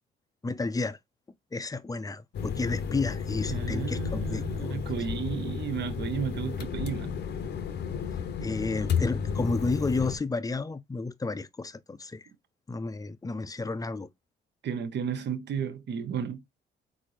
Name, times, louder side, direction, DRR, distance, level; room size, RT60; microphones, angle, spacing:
voice 1, 0.4-1.0 1.5-4.8 8.4-12.3 12.7-14.1, left 3 dB, 20° left, 0.5 m, -32 dB
sound 1, 2.3-10.2, left 6 dB, 60° left, 0.8 m, -32 dB
voice 2, 3.5-7.2 14.6-16.4, right 7 dB, 60° right, 0.9 m, -33 dB
4.2 x 3.9 x 3.2 m
cardioid pair, 90°, 20 cm